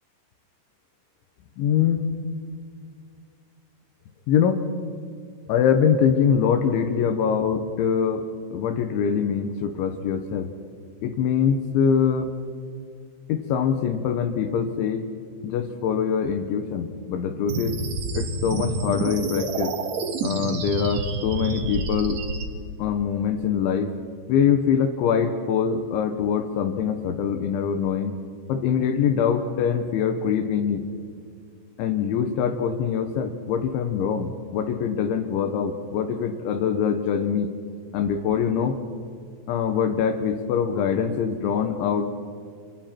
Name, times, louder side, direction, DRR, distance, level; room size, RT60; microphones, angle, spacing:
voice 1, 1.6-2.1 4.3-4.6 5.5-8.2 8.5-10.5 11.0-12.3 13.3-15.0 15.4-17.8 18.1-19.7 20.2-22.2 22.8-23.9 24.3-28.1 28.5-30.8 31.8-37.5 37.9-38.8 39.5-42.1, left 7 dB, 75° left, 7 dB, 3.2 m, -23 dB
sound 1, 17.5-22.4, right 3 dB, 85° right, 1.5 m, -28 dB
27.5 x 26.0 x 4.5 m, 2.2 s
omnidirectional pair, 6.0 m